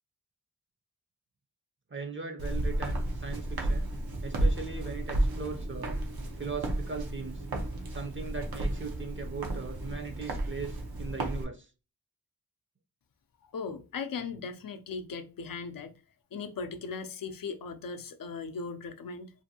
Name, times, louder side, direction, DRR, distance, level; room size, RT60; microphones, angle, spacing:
voice 1, 1.9-3.9 4.2-6.0 6.4-7.4 7.9-11.7, right 4 dB, 35° right, 0.5 m, -39 dB
Walk footsteps, 2.4-11.4, right 1 dB, 85° right, 0.7 m, -32 dB
voice 2, 13.4-16.0 16.3-19.3, left 5 dB, 70° left, 0.5 m, -38 dB
2.6 x 2.5 x 2.7 m
wide cardioid pair, 70°, 36 cm